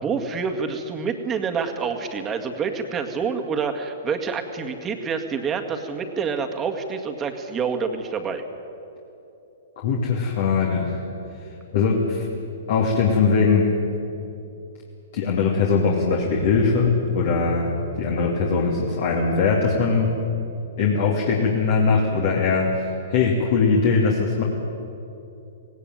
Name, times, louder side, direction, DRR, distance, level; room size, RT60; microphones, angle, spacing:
voice 1, 0.0-8.4, right 5 dB, 20° right, 5 dB, 2.0 m, -27 dB
voice 2, 9.8-11.0 11.7-12.3 12.7-13.7 15.1-20.1 20.8-24.4, left 4 dB, 55° left, -1 dB, 2.8 m, -21 dB
18.0 x 17.5 x 9.3 m, 2.8 s
hypercardioid pair, 120°, 0 cm